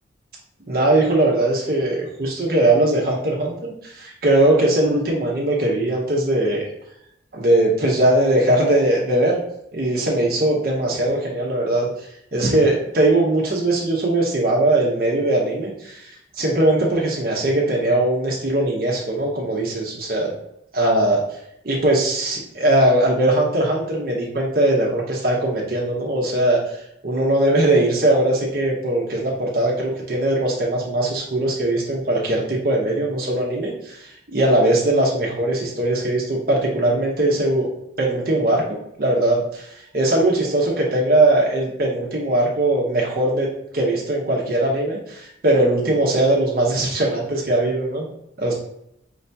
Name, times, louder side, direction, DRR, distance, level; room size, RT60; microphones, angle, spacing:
voice 1, 0.7-6.7 7.3-9.4 9.7-11.9 12.3-16.1 16.4-20.3 20.7-21.2 21.6-26.6 27.0-37.7 38.0-39.7 39.9-43.5 43.7-48.0 48.4-48.5, right 1 dB, 50° right, -2 dB, 0.8 m, -20 dB
4.8 x 2.8 x 3.3 m, 0.77 s
head